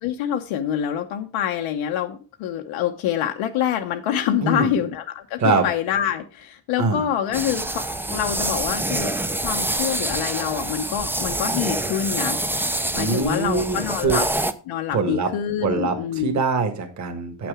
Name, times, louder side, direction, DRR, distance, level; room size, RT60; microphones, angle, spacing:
voice 1, 0.0-9.1 9.4-12.4 12.9-14.3 14.7-16.4, left 9 dB, 90° left, 3 dB, 0.9 m, -26 dB
voice 2, 4.4-4.7 5.4-5.6 6.8-7.0 13.0-14.2 14.9-15.3 15.6-17.5, right 4 dB, 35° right, 5 dB, 1.5 m, -23 dB
sound 1, 7.3-14.5, right 1 dB, 5° right, 0.3 m, -26 dB
8.3 x 6.1 x 4.8 m, 0.36 s
cardioid pair, 135°, 47 cm